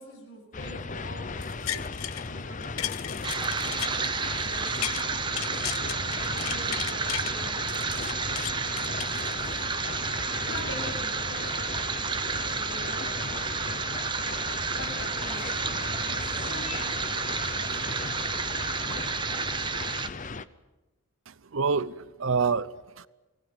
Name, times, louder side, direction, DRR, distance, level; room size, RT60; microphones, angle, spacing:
voice 1, 0.0-2.0 2.2-2.6 3.0-3.3 3.6-3.9 4.3-7.7 8.5-8.9 9.8-11.7 12.5-13.0 14.8-17.7, left 1 dB, 70° left, 7.8 m, -44 dB
sound 1, 0.5-20.4, left 3 dB, 40° left, 0.7 m, -36 dB
sound 2, 1.4-2.3 2.6-5.0 5.4-7.3 7.7-9.7 10.1-10.2, left 12 dB, 90° left, 0.8 m, -35 dB
sound 3, 3.2-20.1, right 5 dB, 20° right, 1.0 m, -31 dB
voice 2, 21.3-23.1, right 5 dB, 70° right, 0.7 m, -28 dB
23.5 x 19.0 x 9.0 m
head